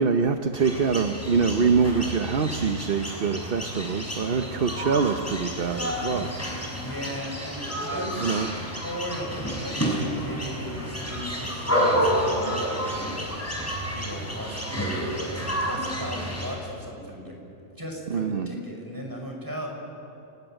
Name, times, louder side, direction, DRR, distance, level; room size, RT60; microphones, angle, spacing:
voice 1, 0.0-6.3 7.8-8.5 18.1-18.5, right 5 dB, 50° right, 7 dB, 1.1 m, -25 dB
sound 1, 0.5-16.6, equal, 10° left, 5.5 m, -30 dB
voice 2, 6.7-8.5 8.8-13.1 13.8-17.4 17.8-19.7, equal, 15° right, 0 dB, 5.8 m, -36 dB
29.5 x 19.5 x 9.1 m, 2.9 s
omnidirectional pair, 1.3 m